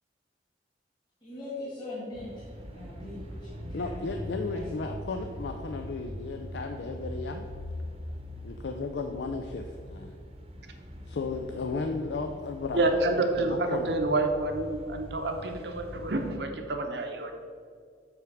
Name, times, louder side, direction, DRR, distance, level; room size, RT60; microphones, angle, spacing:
voice 1, 1.2-4.7, left 2 dB, 25° left, -8 dB, 1.8 m, -41 dB
sound 1, 2.1-16.4, equal, 35° right, 0.9 m, -42 dB
voice 2, 3.7-7.4 8.4-10.1 11.1-13.9, left 3 dB, 70° left, 5 dB, 0.4 m, -35 dB
voice 3, 12.7-17.3, right 2 dB, 70° right, 4 dB, 0.9 m, -28 dB
7.9 x 3.5 x 6.0 m, 2.1 s
head